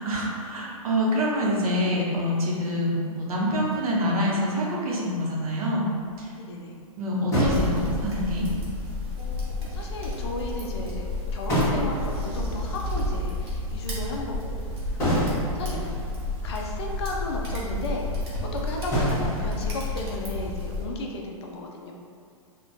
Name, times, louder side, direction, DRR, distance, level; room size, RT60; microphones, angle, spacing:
voice 1, 0.0-5.8 6.2-6.3 7.0-8.5, equal, 80° right, -4 dB, 0.7 m, -26 dB
sound 1, 3.4-4.2 6.1-6.2 7.3-8.4 11.2-11.3 11.5-12.6 15.0-16.2 16.8-16.9 17.2-17.3 18.9-20.2, equal, 15° left, 0.9 m, -28 dB
voice 2, 6.4-6.8 9.2-15.8 16.4-21.9, left 2 dB, 45° left, 0 dB, 0.4 m, -34 dB
sound 2, 7.4-20.8, left 2 dB, 45° right, 0.7 m, -31 dB
2.4 x 2.1 x 2.5 m, 2.3 s
hypercardioid pair, 150°, 19 cm